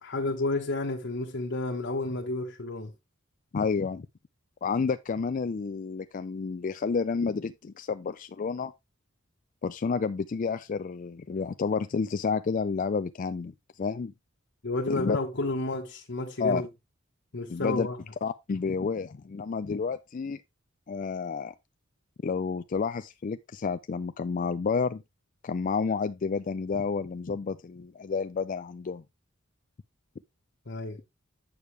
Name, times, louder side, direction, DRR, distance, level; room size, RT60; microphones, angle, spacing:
voice 1, 0.0-2.9 14.6-16.7 17.3-18.0 30.7-31.0, left 2 dB, 60° left, 1.2 m, -31 dB
voice 2, 3.5-4.1 4.6-8.7 9.6-13.5 13.8-14.1 14.9-15.2 16.4-16.6 17.5-17.9 18.2-20.4 20.9-21.5 22.2-25.0 25.4-29.0, left 5 dB, 40° left, 0.4 m, -30 dB
8.6 x 6.5 x 3.3 m
head